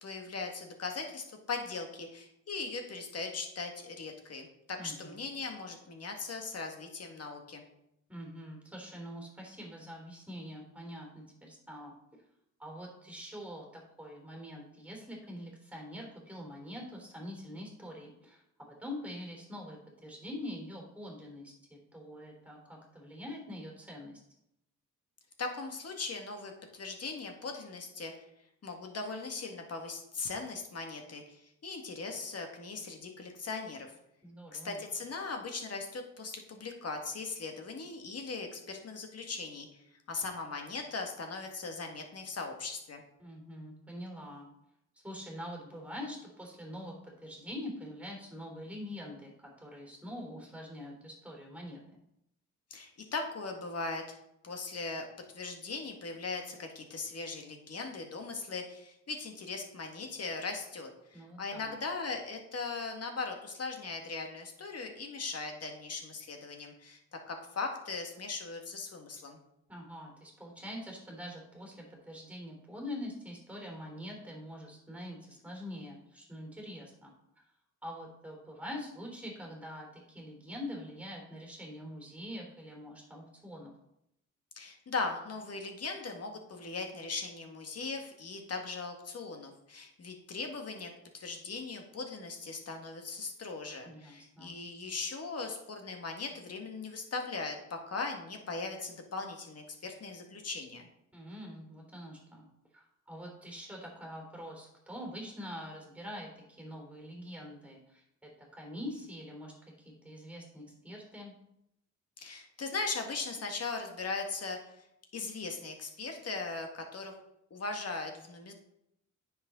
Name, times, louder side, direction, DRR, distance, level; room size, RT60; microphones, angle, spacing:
voice 1, 0.0-7.6 25.4-28.1 28.6-33.9 34.5-39.8 40.1-43.0 52.7-54.2 54.4-55.0 55.3-67.0 67.3-69.4 84.5-100.9 112.2-114.6 115.1-117.1 117.5-118.5, left 4 dB, 50° left, 3 dB, 1.9 m, -39 dB
voice 2, 4.8-5.2 8.1-11.9 12.6-13.6 14.0-18.4 18.7-24.2 34.2-34.8 43.2-44.5 45.0-51.8 61.1-61.7 69.7-77.1 77.8-83.7 93.8-94.5 101.1-102.5 102.7-111.3, left 1 dB, 5° right, 0 dB, 3.4 m, -44 dB
9.5 x 6.5 x 3.8 m, 0.80 s
cardioid pair, 90°, 31 cm